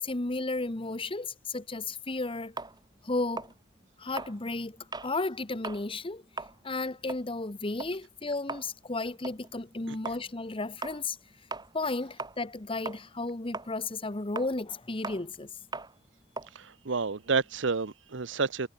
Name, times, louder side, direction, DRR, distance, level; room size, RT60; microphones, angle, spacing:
voice 1, 0.0-2.5 3.0-3.5 4.0-11.2 11.7-15.5, left 2 dB, 30° left, 1.1 m, -33 dB
sound 1, 2.6-5.2 5.5-5.9 6.2-12.6 12.8-17.6, right 3 dB, 20° right, 3.8 m, -41 dB
voice 2, 16.5-18.7, right 4 dB, 75° right, 0.9 m, -30 dB
head